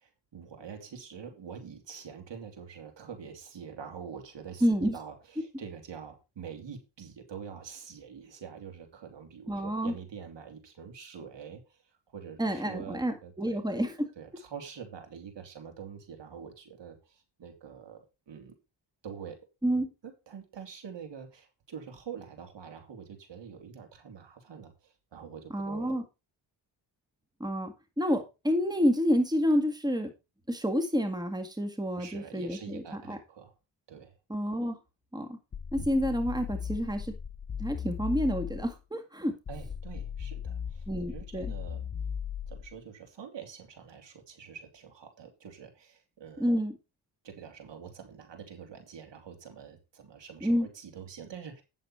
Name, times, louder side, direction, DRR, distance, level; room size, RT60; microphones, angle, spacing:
voice 1, 0.0-11.8 12.1-13.6 14.2-18.6 19.0-19.4 20.0-26.0 32.0-33.5 33.9-34.1 39.5-41.8 42.5-46.5 47.2-51.6, right 7 dB, 65° right, 5 dB, 3.0 m, -45 dB
voice 2, 4.6-5.0 9.5-9.9 12.4-14.1 19.6-19.9 25.5-26.0 27.4-30.1 30.5-33.2 34.3-34.8 35.1-35.4 35.7-37.2 37.6-39.3 40.9-41.5 46.4-46.7 50.4-50.7, equal, 10° right, 6 dB, 1.9 m, -29 dB
sound 1, 35.5-38.8 39.5-42.8, left 7 dB, 30° left, 0.9 m, -37 dB
9.2 x 7.3 x 4.3 m, 0.27 s
cardioid pair, 75°, 46 cm